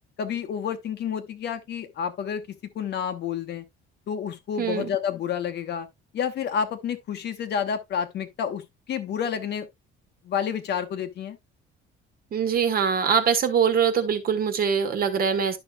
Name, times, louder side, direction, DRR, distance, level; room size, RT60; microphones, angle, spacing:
voice 1, 0.2-3.6 4.1-5.9 6.1-9.7 10.2-11.4, left 7 dB, 50° left, 1.1 m, -29 dB
voice 2, 12.3-15.6, right 7 dB, 45° right, 1.4 m, -23 dB
11.5 x 5.7 x 2.3 m
cardioid pair, 145°, 21 cm